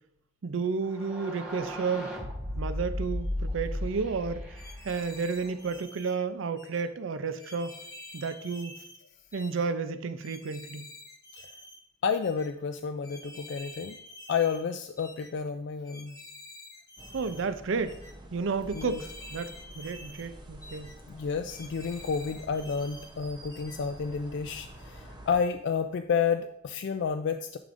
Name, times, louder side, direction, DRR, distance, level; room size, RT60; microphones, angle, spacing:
voice 1, 0.4-2.1 2.6-7.8 8.1-8.8 9.3-10.9 17.1-18.0 18.3-20.9, right 4 dB, 70° right, 11 dB, 0.5 m, -32 dB
sound 1, 0.8-5.6, left 1 dB, 5° right, 2.5 m, -35 dB
sound 2, 4.5-6.1 6.6-6.8 7.4-9.0 9.3-9.7 10.2-11.8 12.2-12.5 13.0-14.6 15.0-15.3 15.8-17.4 17.9-18.1 18.7-20.3 20.6-21.0 21.5-23.1 23.5-23.8, left 2 dB, 20° left, 0.9 m, -48 dB
voice 2, 12.0-14.0 14.3-16.1 18.7-19.0 21.1-27.6, left 6 dB, 60° left, 7 dB, 0.3 m, -30 dB
sound 3, 17.0-25.4, right 1 dB, 20° right, 0.8 m, -48 dB
10.5 x 5.0 x 2.6 m, 0.76 s
head